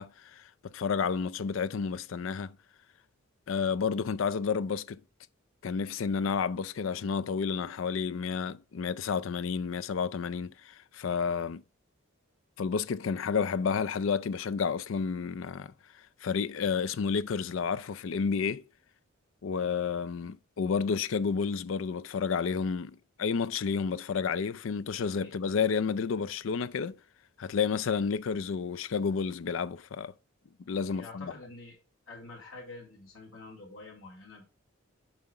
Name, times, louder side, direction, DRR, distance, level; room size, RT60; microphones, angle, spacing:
voice 1, 0.0-2.6 3.5-5.0 5.6-11.6 12.6-15.7 16.2-18.6 19.4-27.0 27.4-30.1 30.7-31.3, left 6 dB, 70° left, 0.4 m, -31 dB
voice 2, 25.0-25.3 30.9-31.8 32.1-34.4, left 3 dB, 85° left, 3.7 m, -47 dB
7.4 x 4.9 x 4.2 m
head